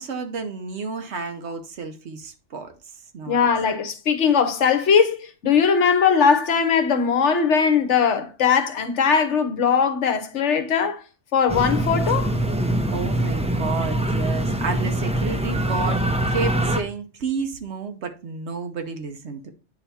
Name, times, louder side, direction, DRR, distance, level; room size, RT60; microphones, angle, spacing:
voice 1, 0.0-2.7 3.1-3.4 12.9-19.5, right 4 dB, 65° right, 1.1 m, -31 dB
voice 2, 3.3-11.0 11.3-12.4, left 6 dB, 70° left, 1.2 m, -20 dB
sound 1, 11.5-16.8, right 1 dB, 10° right, 0.4 m, -23 dB
9.4 x 3.4 x 4.1 m
omnidirectional pair, 1.3 m